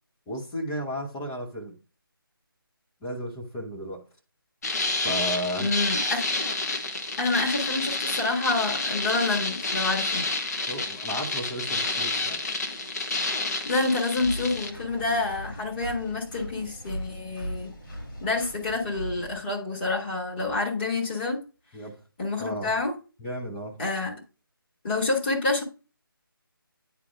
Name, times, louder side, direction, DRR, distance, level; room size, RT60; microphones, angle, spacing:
voice 1, 0.3-1.7 3.0-4.0 5.0-5.8 10.7-12.4 21.7-22.0 22.4-22.7 23.2-23.8, equal, 5° left, 0.3 m, -33 dB
sound 1, 4.6-14.7, left 2 dB, 45° left, 1.2 m, -29 dB
voice 2, 5.6-6.2 7.2-10.2 13.6-17.7 18.2-21.4 22.2-22.9 23.8-24.2 24.8-25.6, left 3 dB, 25° left, 1.6 m, -28 dB
Engine, 14.2-19.4, equal, 60° left, 2.8 m, -38 dB
9.8 x 4.6 x 2.3 m
figure-of-eight pair, 155°, 12 cm